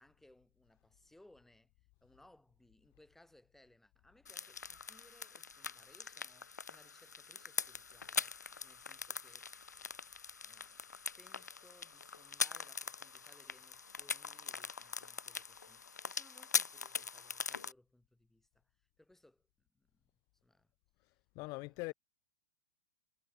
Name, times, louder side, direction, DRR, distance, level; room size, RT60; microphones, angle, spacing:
voice 1, 0.0-1.7 2.0-9.5 10.4-19.5 19.7-20.1 20.4-20.7 21.5-21.7, left 1 dB, 5° left, 5.4 m, -66 dB
sound 1, 4.3-17.7, left 5 dB, 85° left, 0.8 m, -42 dB
voice 2, 21.0-21.9, left 27 dB, 35° left, 0.4 m, -43 dB
figure-of-eight pair, 100°, 9 cm